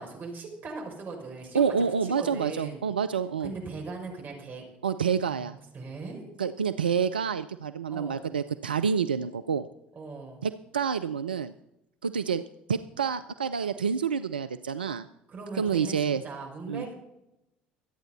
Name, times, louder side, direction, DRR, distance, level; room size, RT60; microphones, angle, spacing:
voice 1, 0.0-1.6 2.0-2.9 3.4-4.7 5.3-5.5 5.7-6.3 7.9-8.2 9.9-10.4 15.3-16.9, right 4 dB, 40° right, 0 dB, 6.0 m, -39 dB
voice 2, 1.5-3.5 4.8-5.5 6.4-9.7 10.4-11.5 12.0-12.4 12.7-15.1 15.5-16.2 16.7-16.9, right 6 dB, 90° right, 11 dB, 0.4 m, -28 dB
24.5 x 9.1 x 4.1 m, 0.88 s
hypercardioid pair, 60°, 5 cm